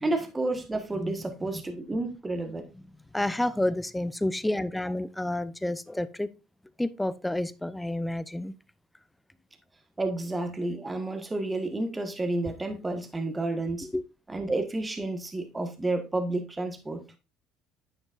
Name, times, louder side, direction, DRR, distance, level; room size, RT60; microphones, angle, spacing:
voice 1, 0.0-2.7 10.0-13.9 14.3-17.0, right 2 dB, 20° right, 1.4 m, -30 dB
voice 2, 0.9-1.6 3.1-6.3 6.8-8.6 13.9-14.0, left 1 dB, 10° left, 0.6 m, -30 dB
9.4 x 6.2 x 2.5 m
hypercardioid pair, 70°, 0 cm